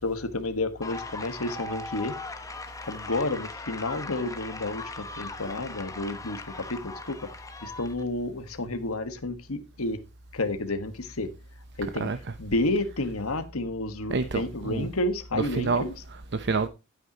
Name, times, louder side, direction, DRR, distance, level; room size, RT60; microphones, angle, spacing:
voice 1, 0.0-2.1 2.7-7.3 7.6-10.0 10.3-11.3 11.8-12.1 12.4-15.9, left 2 dB, 80° left, 1.5 m, -30 dB
sound 1, 0.8-8.0, left 3 dB, 15° left, 1.1 m, -39 dB
voice 2, 11.8-12.4 14.1-14.9 15.3-16.7, right 4 dB, 55° right, 0.8 m, -29 dB
11.5 x 9.3 x 2.9 m
head